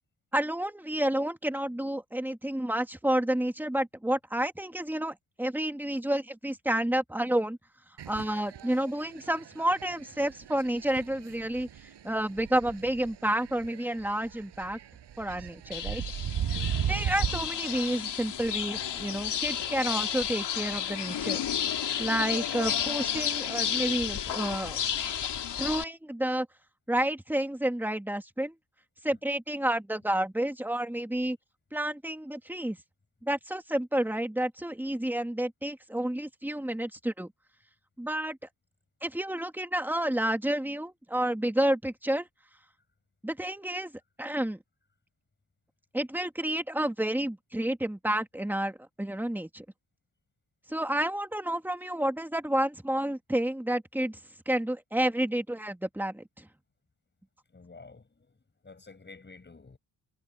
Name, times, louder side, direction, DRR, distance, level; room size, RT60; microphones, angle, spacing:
voice 1, 0.3-7.6 8.1-14.8 15.2-16.0 16.9-21.4 22.0-24.8 25.6-26.5 26.9-28.5 29.0-31.4 31.7-32.8 33.2-37.3 38.0-38.4 39.0-42.3 43.2-43.9 44.2-44.6 45.9-49.6 50.7-54.2 54.5-56.5, right 1 dB, 5° right, 2.0 m, -30 dB
sound 1, 8.0-17.5, right 9 dB, 85° right, 7.4 m, -37 dB
sound 2, 15.7-25.8, left 9 dB, 85° left, 3.0 m, -32 dB
voice 2, 16.5-16.8 57.5-58.3 58.6-59.8, left 4 dB, 25° left, 6.2 m, -50 dB
wide cardioid pair, 130°, 40 cm